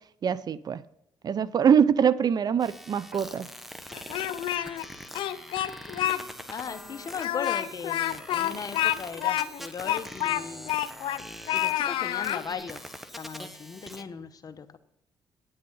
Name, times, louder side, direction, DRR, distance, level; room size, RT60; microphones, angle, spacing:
voice 1, 0.2-0.8 1.2-3.5, right 7 dB, 50° right, 0.6 m, -23 dB
sound 1, 2.6-14.0, equal, ahead, 1.2 m, -43 dB
Speech, 3.9-4.8 5.1-6.2 6.5-6.6 7.1-11.2 11.5-12.4, left 12 dB, 85° left, 0.7 m, -28 dB
voice 2, 6.0-10.8 11.5-14.8, left 6 dB, 45° left, 1.0 m, -38 dB
9.6 x 8.7 x 5.5 m
cardioid pair, 80°, 9 cm